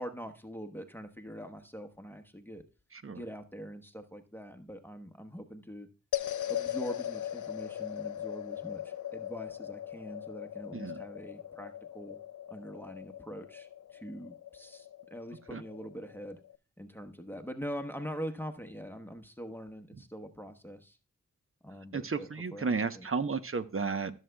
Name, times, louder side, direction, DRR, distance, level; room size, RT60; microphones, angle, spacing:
voice 1, 0.0-2.6 3.1-5.9 6.5-12.2 12.5-16.4 16.8-21.0 21.6-23.1, equal, 5° left, 5 dB, 1.1 m, -43 dB
sound 1, 6.1-16.6, left 11 dB, 70° left, 0.5 m, -39 dB
voice 2, 10.7-11.0 15.5-15.6 21.9-24.1, right 4 dB, 45° right, 10 dB, 0.9 m, -33 dB
15.0 x 6.5 x 2.3 m, 0.34 s
cardioid pair, 50°, 32 cm